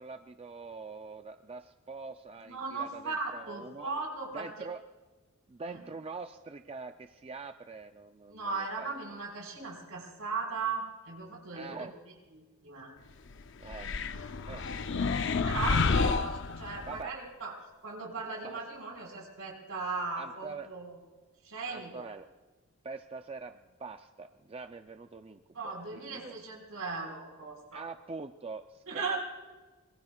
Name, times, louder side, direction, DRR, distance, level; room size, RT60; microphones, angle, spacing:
voice 1, 0.0-3.9 4.3-4.8 5.5-8.9 11.5-12.0 13.6-14.0 14.5-15.0 15.6-15.8 16.9-17.1 18.4-18.6 20.2-20.7 21.7-22.3 22.8-26.5 27.7-29.2, right 4 dB, 25° right, 7 dB, 0.4 m, -44 dB
voice 2, 2.4-4.5 5.7-5.8 8.3-11.9 12.4-12.9 15.4-17.5 17.8-20.9 21.4-22.1 25.5-27.8 28.9-29.2, right 4 dB, 70° right, 0 dB, 4.7 m, -37 dB
sound 1, 13.7-17.0, left 4 dB, 55° left, 0.6 m, -30 dB
25.0 x 22.5 x 2.3 m, 1.2 s
head